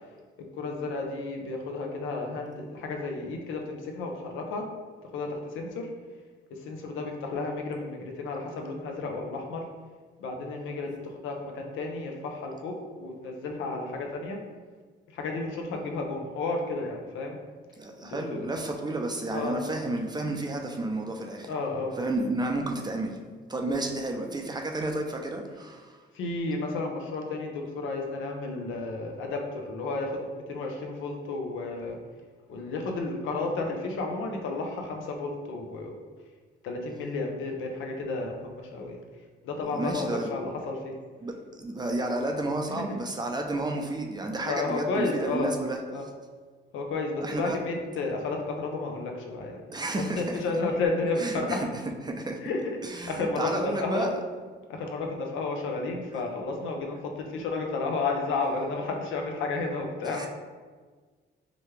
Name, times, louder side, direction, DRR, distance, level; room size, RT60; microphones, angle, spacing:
voice 1, 0.6-4.6 5.1-5.9 6.6-9.6 10.2-11.0 11.2-14.4 15.1-17.4 18.0-18.6 19.3-19.6 21.5-21.9 26.1-32.0 32.5-36.1 36.6-39.0 39.4-40.9 42.7-43.0 44.4-45.5 45.9-46.1 46.7-49.6 50.2-51.6 52.4-54.1 54.7-60.3, left 3 dB, 80° left, 2 dB, 0.7 m, -32 dB
voice 2, 17.8-21.5 22.0-23.2 23.5-26.0 39.7-40.3 41.2-45.8 47.2-47.6 49.7-50.4 51.2-51.7 52.0-52.4 52.8-54.1 60.0-60.3, right 2 dB, 20° right, 2 dB, 0.5 m, -31 dB
4.9 x 2.2 x 3.2 m, 1.5 s
cardioid pair, 90°, 20 cm